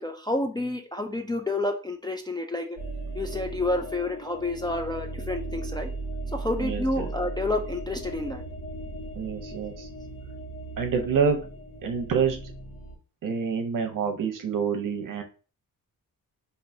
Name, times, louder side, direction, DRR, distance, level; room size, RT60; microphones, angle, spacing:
voice 1, 0.0-2.7 3.1-5.9 6.3-8.4, left 2 dB, 15° left, 2 dB, 0.3 m, -29 dB
sound 1, 2.8-12.9, right 2 dB, 75° left, 1.2 m, -37 dB
voice 2, 6.6-7.1 9.2-9.9 10.8-11.5 11.8-12.5 13.2-15.2, right 6 dB, 60° right, 5 dB, 0.8 m, -27 dB
4.6 x 2.6 x 2.6 m, 0.36 s
wide cardioid pair, 130°, 35 cm